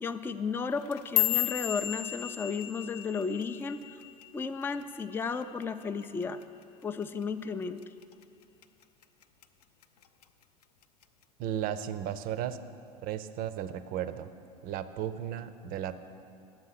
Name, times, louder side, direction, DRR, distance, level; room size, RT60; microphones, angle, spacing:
voice 1, 0.0-4.0 4.3-6.4 6.8-7.8, left 5 dB, 10° left, 9 dB, 0.4 m, -34 dB
sound 1, 0.7-5.1 5.4-5.8 6.2-6.6 7.0-7.2 7.8-8.2 8.6-9.4 9.8-10.2 11.0-11.1, left 15 dB, 75° left, 0.5 m, -33 dB
voice 2, 11.4-12.6 13.0-14.3 14.6-15.9, right 10 dB, 45° right, 13 dB, 0.6 m, -34 dB
10.5 x 7.5 x 5.7 m, 2.6 s
hypercardioid pair, 85°, 20 cm